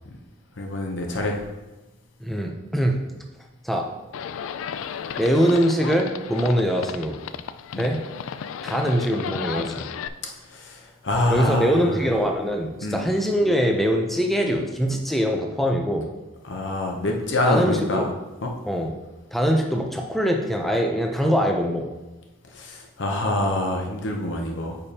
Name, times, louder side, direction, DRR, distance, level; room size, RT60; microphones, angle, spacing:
voice 1, 0.6-1.5 7.7-7.9 10.5-11.9 12.8-13.0 16.4-18.1 18.4-18.5 22.5-24.8, left 1 dB, 65° left, 1 dB, 0.8 m, -26 dB
voice 2, 2.2-3.0 3.6-3.9 5.2-7.2 7.8-8.0 8.6-9.9 11.3-16.1 17.5-18.1 18.7-18.9 19.3-21.9, equal, ahead, 1 dB, 0.6 m, -23 dB
Livestock farm animals working animals, 4.1-10.1, left 7 dB, 85° left, 0.3 m, -34 dB
8.7 x 5.2 x 2.9 m, 1.1 s
head